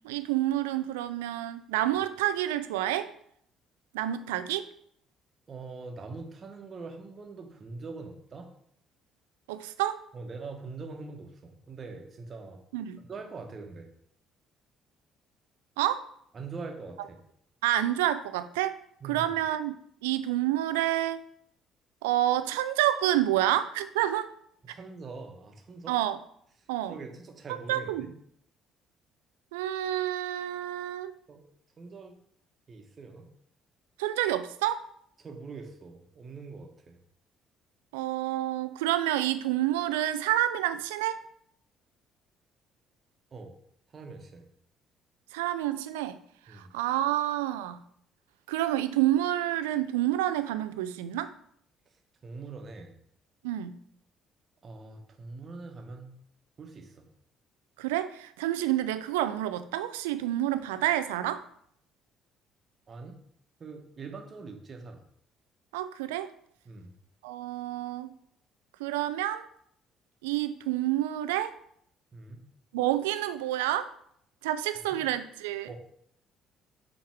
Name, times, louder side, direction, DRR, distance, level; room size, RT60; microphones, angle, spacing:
voice 1, 0.0-3.1 3.9-4.7 9.5-10.0 12.7-13.0 15.8-16.1 17.6-18.8 19.1-19.7 20.0-21.2 22.0-24.3 25.9-26.2 26.7-26.9 27.7-28.1 29.5-31.1 34.0-34.9 37.9-41.2 45.3-46.2 46.5-47.8 48.5-51.3 53.4-53.8 57.8-61.4 65.7-66.3 67.2-68.1 68.8-69.5 70.2-71.6 72.7-73.9 74.4-75.7, right 13 dB, 75° right, 11 dB, 0.4 m, -28 dB
voice 2, 5.5-8.5 10.1-12.6 13.1-13.9 16.3-17.2 19.0-19.3 24.6-25.9 26.9-28.1 31.3-31.4 31.8-32.2 32.7-33.3 35.2-37.0 43.3-43.5 43.9-44.5 46.5-46.7 52.2-52.9 54.6-56.1 56.6-57.1 62.9-63.2 63.6-65.0 66.6-66.9 72.1-72.5 74.9-75.0 75.7-75.8, right 4 dB, 40° right, 4 dB, 1.2 m, -43 dB
7.1 x 3.3 x 4.7 m, 0.68 s
figure-of-eight pair, 50°, 0 cm